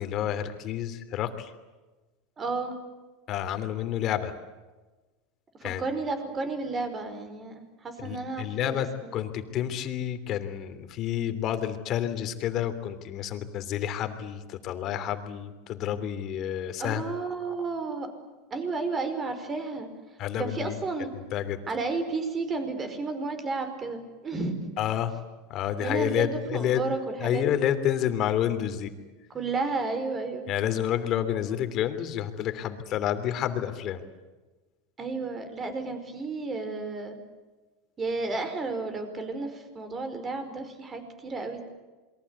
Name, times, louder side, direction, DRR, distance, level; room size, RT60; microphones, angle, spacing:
voice 1, 0.0-1.5 3.3-4.3 5.6-5.8 8.0-8.9 9.1-17.1 20.2-20.8 21.3-21.6 24.8-25.1 25.5-26.8 27.2-28.9 30.5-34.0, left 10 dB, 40° left, 10 dB, 3.1 m, -29 dB
voice 2, 2.4-2.8 5.6-9.1 16.8-18.1 18.5-19.9 20.4-21.1 21.7-24.8 25.8-27.6 29.3-30.5 35.0-37.2 38.0-41.6, right 3 dB, 20° right, 8 dB, 5.1 m, -32 dB
28.0 x 23.0 x 8.5 m, 1.2 s
supercardioid pair, 135°, 0 cm